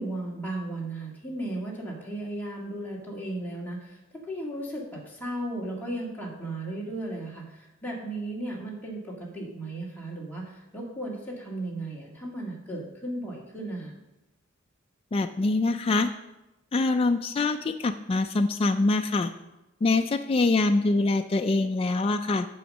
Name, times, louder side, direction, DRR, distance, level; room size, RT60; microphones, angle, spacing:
voice 1, 0.0-13.9, right 1 dB, 10° left, -5 dB, 2.2 m, -35 dB
voice 2, 15.1-16.1 16.7-19.3 19.8-22.5, left 3 dB, 30° left, 6 dB, 0.3 m, -24 dB
8.6 x 7.1 x 5.4 m, 0.97 s
head